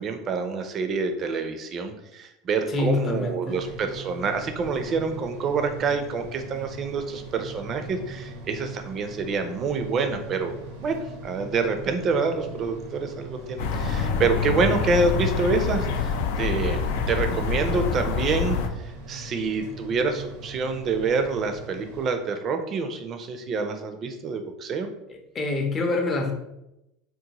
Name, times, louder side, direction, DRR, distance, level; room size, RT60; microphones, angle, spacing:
voice 1, 0.0-10.5 10.8-24.9, right 4 dB, 35° right, 7 dB, 0.4 m, -27 dB
voice 2, 2.7-3.6 25.1-26.3, left 3 dB, 30° left, 4 dB, 0.6 m, -26 dB
sound 1, 3.5-22.1, right 2 dB, 85° right, 0.7 m, -41 dB
sound 2, 13.6-18.7, left 5 dB, 80° left, 0.4 m, -26 dB
3.9 x 2.1 x 2.8 m, 0.89 s
supercardioid pair, 120°, 0 cm